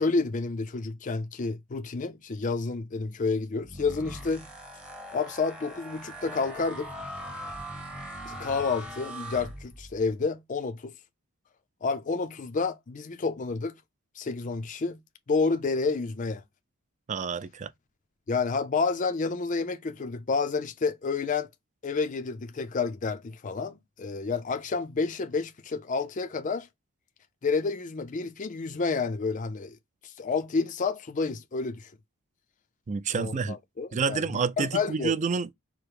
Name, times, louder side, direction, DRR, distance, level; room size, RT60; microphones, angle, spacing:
voice 1, 0.0-4.5 5.1-6.9 8.3-10.9 11.8-13.8 14.2-15.0 15.3-16.4 18.3-21.5 21.8-26.7 27.4-29.8 30.0-31.9 33.1-34.2 34.6-35.1, left 4 dB, 35° left, 0.4 m, -29 dB
sound 1, 3.6-10.1, equal, 5° right, 0.8 m, -41 dB
voice 2, 17.1-17.7 32.9-33.6 33.9-35.5, right 5 dB, 35° right, 0.3 m, -28 dB
4.8 x 2.0 x 4.6 m
head